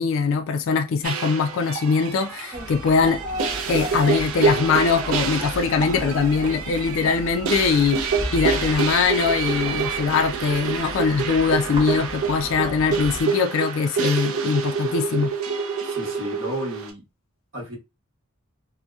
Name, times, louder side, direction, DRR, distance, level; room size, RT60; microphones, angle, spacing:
voice 1, 0.0-3.2 3.7-8.0 8.3-15.3, left 5 dB, 60° left, 0.3 m, -22 dB
sound 1, 1.0-16.9, right 5 dB, 80° right, 0.5 m, -27 dB
sound 2, 2.5-13.2, equal, 20° right, 0.5 m, -35 dB
voice 2, 12.3-13.0 15.8-17.0 17.5-17.8, equal, 60° right, 0.9 m, -34 dB
2.6 x 2.1 x 2.3 m
head